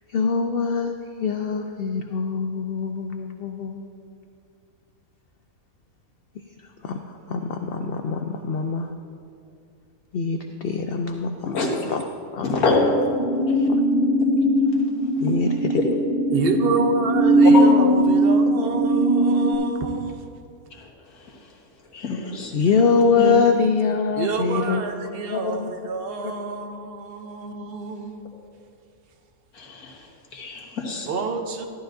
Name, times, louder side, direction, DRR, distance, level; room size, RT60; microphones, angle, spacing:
voice 1, 0.1-3.8 6.3-6.4 6.8-8.9 10.1-12.0 12.3-12.6 13.7-13.8 15.2-15.8 22.1-22.2 22.5-24.8 25.3-25.7 26.2-26.3, left 5 dB, 65° left, 5 dB, 0.6 m, -24 dB
voice 2, 11.5-11.8 12.4-12.8 13.6-13.7 17.5-17.7 20.8-20.9 21.9-22.6 23.2-23.4 29.5-30.1 30.3-31.1, left 4 dB, 85° left, -1 dB, 1.9 m, -26 dB
sound 1, 12.6-19.5, right 1 dB, 25° right, 2.3 m, -20 dB
voice 3, 16.3-20.2 24.2-28.2 31.0-31.7, right 4 dB, 50° right, 5 dB, 0.9 m, -28 dB
14.0 x 12.0 x 2.6 m, 2.5 s
omnidirectional pair, 1.5 m